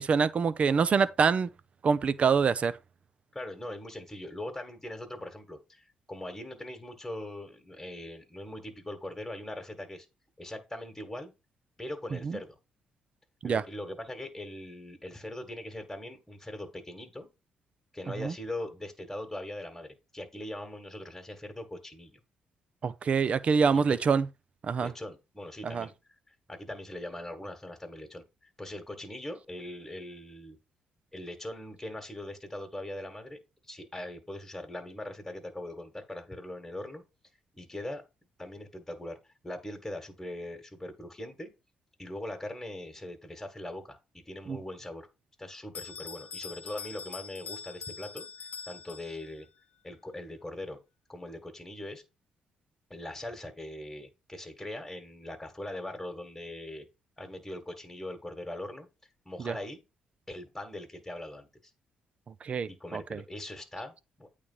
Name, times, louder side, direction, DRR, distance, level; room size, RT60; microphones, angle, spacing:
voice 1, 0.0-1.5 1.8-2.8 12.2-12.4 13.4-13.6 18.2-18.3 22.8-24.3 24.6-24.9 25.6-25.9 44.5-44.6 59.4-59.5 62.4-63.2, right 5 dB, 50° right, 0.6 m, -26 dB
voice 2, 3.3-10.1 10.4-11.3 11.8-12.6 13.4-17.3 17.9-22.2 23.7-24.0 24.8-25.9 26.3-28.2 28.6-30.6 31.1-33.4 33.7-37.0 37.6-38.0 38.4-39.2 39.4-41.5 42.0-45.1 45.4-48.3 48.7-49.5 49.8-50.8 51.1-52.0 52.9-56.8 57.2-58.9 59.2-59.8 60.3-61.5 62.7-64.3, left 1 dB, 10° left, 1.6 m, -41 dB
Bell, 45.7-49.5, left 5 dB, 70° left, 0.7 m, -43 dB
8.6 x 3.3 x 5.5 m
cardioid pair, 80°, 3 cm